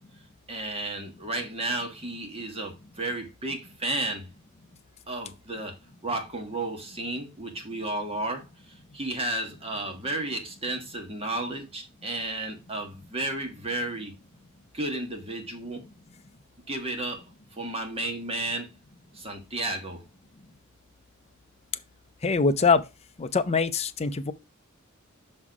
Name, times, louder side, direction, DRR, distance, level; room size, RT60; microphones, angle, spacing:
voice 1, 0.5-4.3 5.1-5.8 6.0-8.4 8.9-14.1 14.7-15.9 16.7-17.2 17.5-18.7 19.1-20.0, right 2 dB, 30° right, 1.7 m, -32 dB
voice 2, 22.2-22.8 23.2-24.3, left 4 dB, 30° left, 0.6 m, -23 dB
6.0 x 4.3 x 4.7 m
head